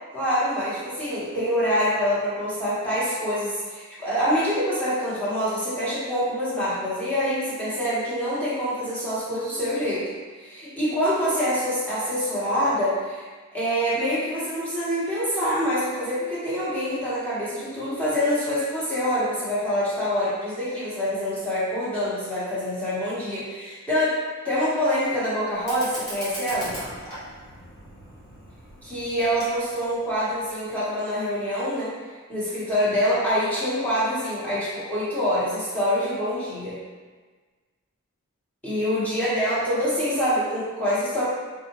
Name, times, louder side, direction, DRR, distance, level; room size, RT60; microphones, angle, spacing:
voice 1, 0.1-10.1 10.4-13.2 13.5-24.2 24.4-26.7 28.8-31.9 32.3-36.8 38.6-41.2, equal, 5° left, -11 dB, 1.2 m, -25 dB
Fire, 25.5-30.5, equal, 50° left, 1.4 m, -40 dB
3.6 x 2.6 x 2.9 m, 1.4 s
head